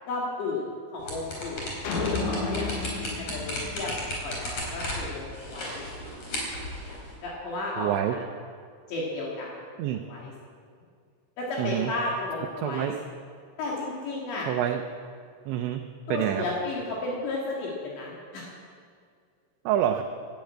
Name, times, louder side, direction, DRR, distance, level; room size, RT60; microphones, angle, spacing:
voice 1, 0.1-0.7 0.9-3.9 4.2-6.1 6.8-8.2 8.9-10.3 11.4-12.9 13.6-14.5 16.1-18.5, left 2 dB, 70° left, -4 dB, 4.1 m, -33 dB
sound 1, 1.0-7.1, left 1 dB, 35° left, 4.4 m, -35 dB
sound 2, 1.8-4.3, left 3 dB, 85° left, 4.4 m, -32 dB
voice 2, 7.8-8.2 9.8-10.0 11.6-11.9 12.6-13.0 14.5-14.8 15.5-15.8 16.1-16.4 19.7-20.0, right 11 dB, 80° right, 5 dB, 2.8 m, -26 dB
14.0 x 10.5 x 8.7 m, 2.2 s
omnidirectional pair, 5.6 m